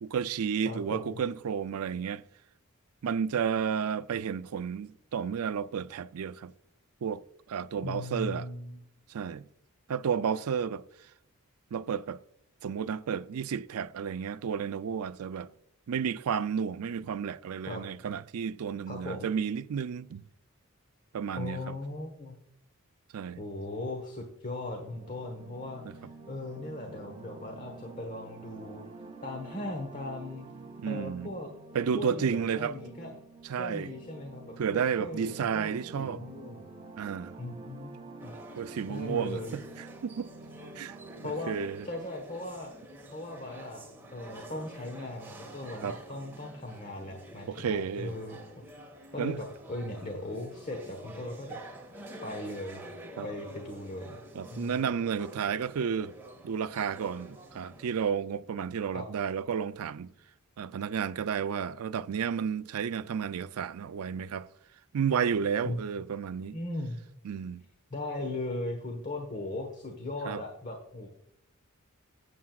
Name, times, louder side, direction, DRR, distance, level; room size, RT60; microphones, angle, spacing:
voice 1, 0.0-2.2 3.0-6.5 7.0-7.2 7.5-8.5 9.1-9.5 9.9-10.8 11.7-12.2 12.6-15.5 15.9-20.2 21.1-21.7 23.1-23.4 25.9-26.0 30.8-31.3 31.7-32.8 33.4-33.9 34.6-36.2 37.0-37.3 38.6-40.3 40.8-41.0 41.2-41.9 45.8-46.0 47.5-48.2 49.2-49.4 53.2-53.3 54.3-56.1 56.4-60.1 60.6-64.5 64.9-66.6 67.2-67.6 70.3-70.4, right 7 dB, 80° right, 0.4 m, -32 dB
voice 2, 0.6-1.2 7.8-8.8 17.6-17.8 18.9-19.3 21.4-22.4 23.4-28.9 29.2-30.5 30.9-31.5 32.0-33.1 33.6-36.7 37.4-37.9 38.2-38.4 38.9-39.5 41.2-41.5 41.8-42.7 43.1-43.8 44.1-48.4 49.1-51.6 52.2-52.8 53.2-54.2 54.5-55.0 58.9-59.1 65.6-65.8 66.5-67.0 67.9-71.2, left 2 dB, 35° left, 1.3 m, -38 dB
sound 1, 24.8-42.1, right 3 dB, 25° right, 0.7 m, -48 dB
sound 2, 38.2-58.1, right 1 dB, 10° right, 1.9 m, -48 dB
15.0 x 8.4 x 2.4 m
head